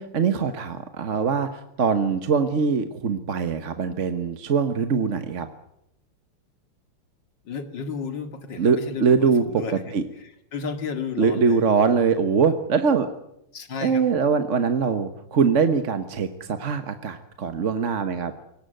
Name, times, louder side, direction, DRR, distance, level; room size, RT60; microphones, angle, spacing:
voice 1, 0.0-5.5 8.6-10.0 11.2-13.1 13.8-18.3, right 5 dB, 40° right, 8 dB, 1.2 m, -22 dB
voice 2, 7.5-11.6 13.5-14.2, left 5 dB, 55° left, 8 dB, 2.7 m, -33 dB
22.5 x 18.5 x 9.1 m, 0.79 s
omnidirectional pair, 2.4 m